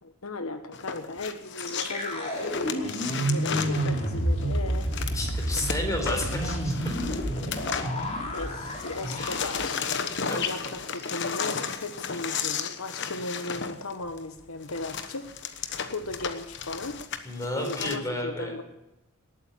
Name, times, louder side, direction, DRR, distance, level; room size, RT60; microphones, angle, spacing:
voice 1, 0.0-4.9 6.1-6.2 8.3-17.0 17.6-18.6, left 2 dB, 80° left, 8 dB, 1.2 m, -37 dB
sound 1, 0.7-8.4 8.7-18.0, left 6 dB, 55° left, 1.2 m, -34 dB
sound 2, 1.6-10.6 10.9-11.1 11.4-11.8, right 1 dB, 30° left, 3.3 m, -30 dB
voice 2, 5.1-7.2 9.2-9.3 10.3-10.4 17.2-18.5, left 1 dB, 15° left, 2 dB, 4.3 m, -32 dB
19.0 x 8.9 x 8.5 m, 0.96 s
head